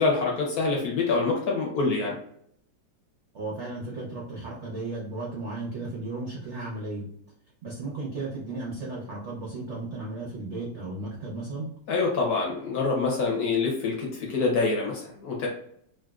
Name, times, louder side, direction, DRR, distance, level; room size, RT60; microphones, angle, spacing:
voice 1, 0.0-2.2 11.9-15.5, left 4 dB, 65° left, -1 dB, 1.1 m, -26 dB
voice 2, 3.3-7.1 7.6-11.7, right 2 dB, 65° right, -4 dB, 0.7 m, -35 dB
3.1 x 2.5 x 2.3 m, 0.66 s
omnidirectional pair, 2.1 m